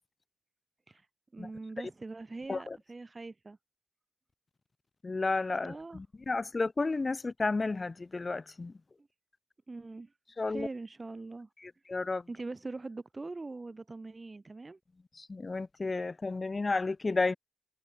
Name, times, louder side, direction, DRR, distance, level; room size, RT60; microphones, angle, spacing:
voice 1, 1.3-3.6 5.6-6.0 9.7-10.1 10.4-11.5 12.3-14.8, right 3 dB, 35° right, 4.9 m, -42 dB
voice 2, 5.0-8.7 10.4-10.7 11.6-12.2 15.1-17.3, left 3 dB, 40° left, 0.8 m, -32 dB
cardioid pair, 60°, 0 cm